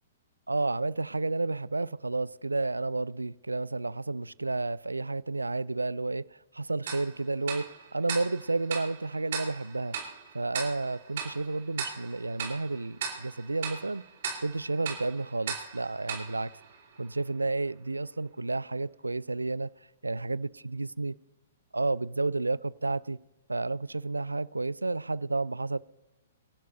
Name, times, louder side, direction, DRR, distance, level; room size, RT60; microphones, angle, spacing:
voice 1, 0.5-10.0 10.3-14.0 14.4-16.5 17.0-19.7 20.0-21.1 21.7-23.2 23.5-25.8, right 3 dB, 80° right, 0.3 m, -31 dB
Tick-tock, 6.9-17.3, right 6 dB, 50° right, 3.6 m, -39 dB
26.5 x 11.0 x 2.6 m
figure-of-eight pair, 115°, 0 cm